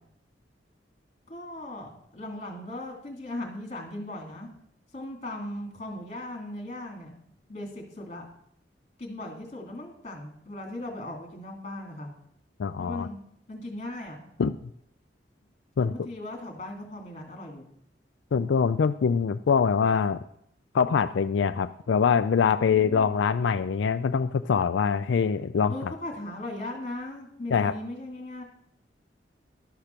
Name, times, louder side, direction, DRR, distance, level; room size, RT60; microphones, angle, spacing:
voice 1, 1.3-4.5 4.9-7.1 7.5-8.2 9.0-12.1 12.8-13.2 13.5-14.2 15.8-17.6 25.7-28.4, left 1 dB, 40° left, 2 dB, 2.7 m, -38 dB
voice 2, 12.6-13.1 14.4-14.7 15.8-15.9 18.3-20.2 20.7-25.9 27.5-27.7, left 6 dB, 90° left, 10 dB, 0.4 m, -24 dB
12.0 x 5.8 x 6.7 m, 0.71 s
head